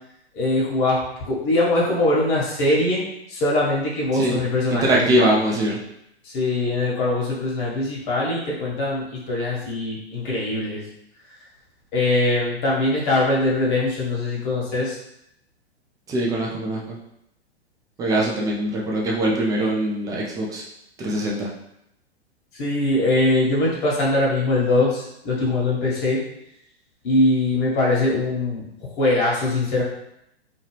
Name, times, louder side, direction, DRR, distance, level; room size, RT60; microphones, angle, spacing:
voice 1, 0.3-3.0 3.3-5.3 6.2-10.8 11.9-15.0 22.5-26.2 27.0-28.7 29.0-29.8, left 2 dB, 50° left, -4 dB, 1.3 m, -22 dB
voice 2, 4.7-5.8 16.1-17.0 18.0-20.6 21.0-21.5, right 1 dB, 10° right, -3 dB, 0.4 m, -22 dB
2.9 x 2.3 x 3.2 m, 0.79 s
hypercardioid pair, 110°, 33 cm